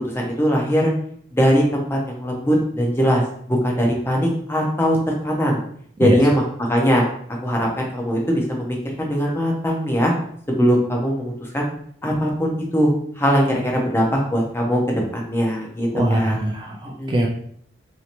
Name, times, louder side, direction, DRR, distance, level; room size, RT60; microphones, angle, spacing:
voice 1, 0.1-0.9 1.3-3.2 3.5-5.0 5.2-5.6 6.0-7.0 7.4-10.1 10.5-11.7 12.0-12.9 13.2-16.4 17.0-17.3, equal, 15° left, -1 dB, 0.6 m, -20 dB
voice 2, 15.9-17.3, right 1 dB, 25° right, 0 dB, 0.3 m, -21 dB
3.1 x 2.7 x 2.9 m, 0.62 s
head